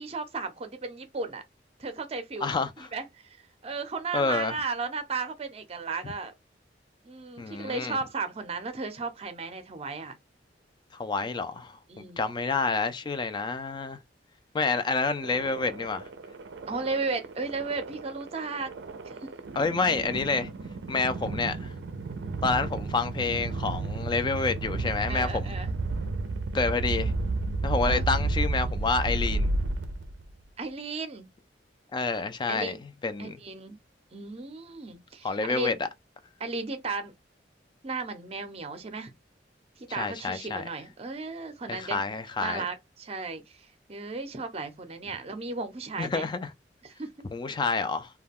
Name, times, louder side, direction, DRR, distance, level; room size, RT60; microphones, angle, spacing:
voice 1, 0.0-1.4 1.8-2.5 2.8-3.4 3.6-6.3 7.0-10.1 11.9-12.2 16.7-18.7 19.0-19.3 25.0-25.7 27.9-28.0 30.6-31.3 32.5-32.8 33.2-33.8 34.1-35.7 36.4-37.1 37.8-39.1 39.8-42.0 42.4-46.3 46.8-47.3, right 4 dB, 35° right, 0.5 m, -35 dB
voice 2, 2.4-2.9 4.1-4.6 7.4-8.0 10.9-14.0 14.5-16.1 19.6-20.5 20.9-21.7 22.4-25.5 26.5-27.1 27.6-29.5 31.9-32.8 33.0-33.4 35.2-35.7 40.0-40.6 41.7-42.6 46.0-46.5 47.3-48.1, left 4 dB, 25° left, 0.3 m, -28 dB
sound 1, 15.2-30.3, right 2 dB, 90° right, 0.4 m, -32 dB
2.3 x 2.2 x 3.4 m
head